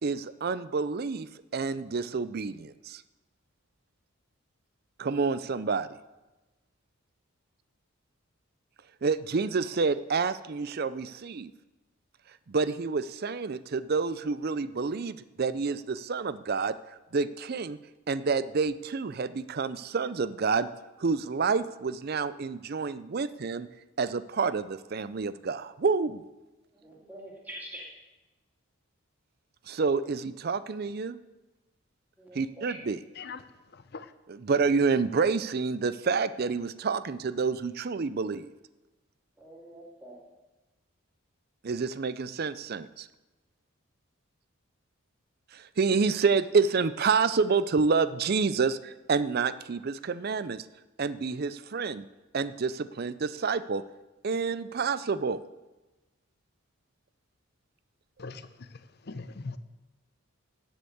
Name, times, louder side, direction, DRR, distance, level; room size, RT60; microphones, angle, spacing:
voice 1, 0.0-3.0 5.0-5.9 9.0-11.5 12.5-16.8 17.1-17.8 18.1-20.7 21.0-23.7 24.0-26.2 29.7-31.2 32.3-33.0 34.3-38.5 41.6-43.1 45.5-50.6 51.0-52.0 52.3-53.8 54.2-55.4, right 4 dB, 45° right, 15 dB, 0.4 m, -28 dB
voice 2, 26.7-27.9 32.2-32.7 39.4-40.2, right 1 dB, 10° right, -4 dB, 2.6 m, -45 dB
voice 3, 33.7-34.1 58.2-58.7 59.1-59.6, left 4 dB, 50° left, 12 dB, 0.6 m, -40 dB
9.8 x 8.0 x 7.9 m, 1.1 s
head